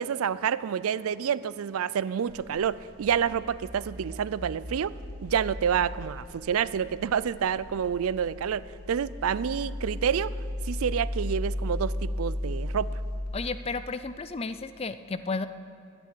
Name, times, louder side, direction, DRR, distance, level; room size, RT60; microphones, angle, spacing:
voice 1, 0.0-4.9 5.2-10.3 10.7-12.9, right 8 dB, 80° right, 18 dB, 0.4 m, -28 dB
sound 1, 2.3-13.3, left 1 dB, 5° left, 3.2 m, -36 dB
voice 2, 13.3-15.5, left 4 dB, 25° left, 12 dB, 0.4 m, -33 dB
12.0 x 9.0 x 9.3 m, 2.7 s
head